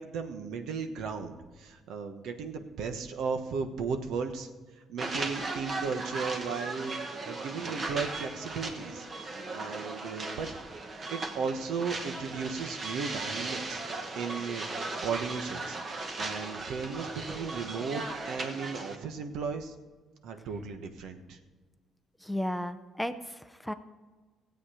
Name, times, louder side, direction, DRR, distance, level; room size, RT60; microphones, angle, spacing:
voice 1, 0.0-4.5 4.9-7.0 7.2-9.1 9.5-10.5 11.1-13.8 14.1-14.6 15.0-15.8 16.2-19.7 20.2-21.4, right 5 dB, 80° right, 7 dB, 1.2 m, -35 dB
sound 1, 5.0-19.0, right 3 dB, 35° right, 1.3 m, -37 dB
voice 2, 22.2-23.7, left 1 dB, 5° left, 9 dB, 0.5 m, -34 dB
17.0 x 8.3 x 4.9 m, 1.4 s
cardioid pair, 135°, 0 cm